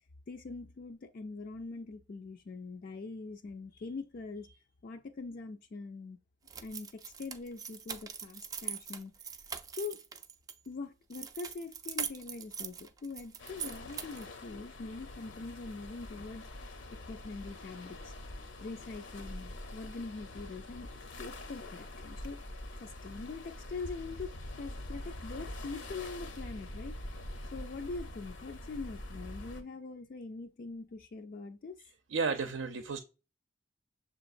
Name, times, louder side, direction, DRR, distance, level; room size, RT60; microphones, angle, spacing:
voice 1, 0.3-6.2 6.6-9.1 9.7-10.0 10.7-16.5 16.9-18.1 18.6-20.9 21.2-22.4 22.8-27.0 27.5-31.8, left 3 dB, 50° left, 0.4 m, -43 dB
sound 1, 6.5-10.5 11.1-14.3, right 7 dB, 20° right, 0.3 m, -42 dB
sound 2, 13.4-29.6, left 1 dB, 70° left, 0.8 m, -45 dB
voice 2, 32.1-33.0, right 4 dB, 85° right, 0.5 m, -32 dB
6.8 x 2.9 x 2.5 m
head